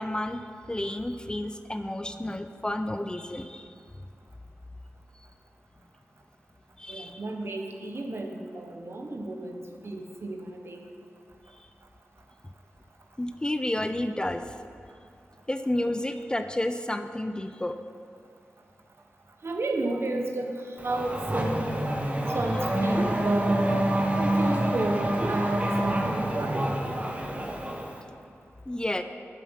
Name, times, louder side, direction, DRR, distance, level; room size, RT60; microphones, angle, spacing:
voice 1, 0.0-3.7 6.8-7.2 13.2-14.4 15.5-17.8 28.7-29.0, left 1 dB, 15° left, 8 dB, 0.4 m, -31 dB
voice 2, 6.9-10.8 19.4-21.6 22.3-23.7 24.2-26.7, right 2 dB, 60° right, 3 dB, 1.0 m, -32 dB
Race car auto racing / Accelerating revving vroom, 20.8-28.0, right 1 dB, 30° right, 1.1 m, -27 dB
7.9 x 7.3 x 5.7 m, 2.5 s
wide cardioid pair, 70°, 5 cm